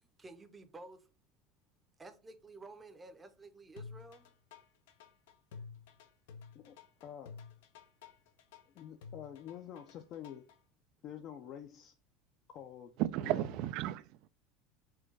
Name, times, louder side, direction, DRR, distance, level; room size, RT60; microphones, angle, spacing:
voice 1, 0.0-1.1 2.0-4.3, right 2 dB, 15° right, 0.6 m, -52 dB
sound 1, 3.8-10.6, left 5 dB, 85° left, 0.6 m, -52 dB
voice 2, 7.0-7.4 8.7-10.5 11.0-11.9 12.5-12.9 13.2-13.5, left 10 dB, 45° left, 0.5 m, -47 dB
voice 3, 13.0-14.3, right 14 dB, 55° right, 0.3 m, -34 dB
4.5 x 2.2 x 4.5 m
supercardioid pair, 140°, 0 cm